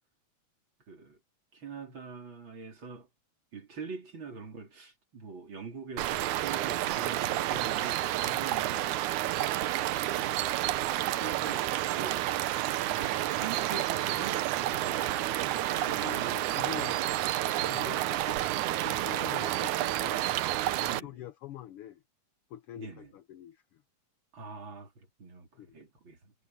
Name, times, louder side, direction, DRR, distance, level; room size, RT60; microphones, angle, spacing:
voice 1, 0.9-1.2 1.5-3.1 3.5-9.8 10.1-10.4 10.9-12.3 12.8-16.4 18.7-18.9 20.9-21.1 22.8-23.1 24.3-26.3, right 5 dB, 40° right, 3.9 m, -44 dB
sound 1, 6.0-21.0, right 14 dB, 80° right, 2.2 m, -30 dB
voice 2, 15.8-17.1 17.4-20.3 20.8-22.0 22.5-23.8 25.6-25.8, left 12 dB, 70° left, 1.3 m, -45 dB
omnidirectional pair, 3.4 m